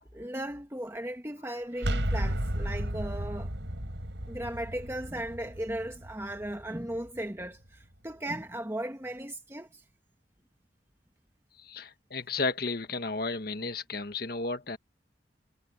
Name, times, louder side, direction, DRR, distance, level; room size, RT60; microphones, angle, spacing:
voice 1, 0.1-3.5 4.3-9.8, right 1 dB, 15° right, 1.4 m, -37 dB
sound 1, 1.8-7.5, right 1 dB, 85° right, 4.6 m, -34 dB
voice 2, 11.6-14.8, left 3 dB, 55° left, 1.5 m, -33 dB
head